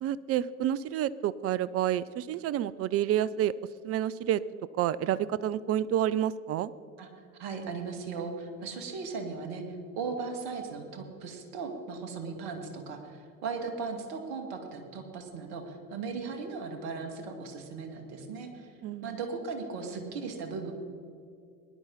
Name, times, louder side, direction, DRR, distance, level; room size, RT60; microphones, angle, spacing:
voice 1, 0.0-3.5 3.8-4.4 4.8-6.7 18.8-19.2, right 11 dB, 35° right, 17 dB, 0.4 m, -29 dB
voice 2, 7.4-9.6 10.0-18.7 19.0-20.7, right 4 dB, 55° right, 4 dB, 2.3 m, -37 dB
19.5 x 11.0 x 4.1 m, 2.4 s
figure-of-eight pair, 70°, 47 cm